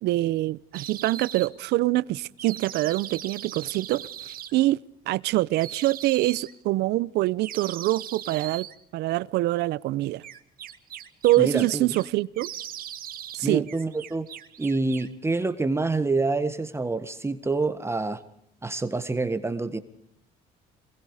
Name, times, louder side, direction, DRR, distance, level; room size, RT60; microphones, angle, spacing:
voice 1, 0.0-4.8 5.1-8.7 8.9-10.2 11.2-12.5 13.3-13.7, right 17 dB, 80° right, 0.8 m, -25 dB
sound 1, 0.7-1.5 2.4-4.5 5.5-6.5 7.4-8.7 10.2-12.1 12.4-13.4 13.7-15.1, right 10 dB, 60° right, 2.1 m, -39 dB
voice 2, 11.4-11.9 13.4-14.3 14.6-18.2 18.6-19.8, right 3 dB, 15° right, 1.6 m, -27 dB
27.5 x 21.5 x 5.0 m
cardioid pair, 110°, 17 cm